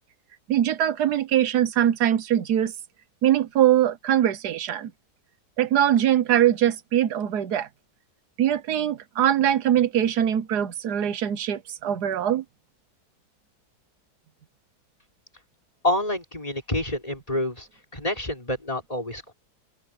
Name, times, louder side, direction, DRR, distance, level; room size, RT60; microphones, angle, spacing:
voice 1, 0.5-2.7 3.2-4.9 5.6-7.7 8.4-12.4, right 11 dB, 85° right, 1.5 m, -22 dB
voice 2, 15.8-17.7 17.9-19.3, left 1 dB, 20° left, 4.1 m, -27 dB
open air
omnidirectional pair, 1.7 m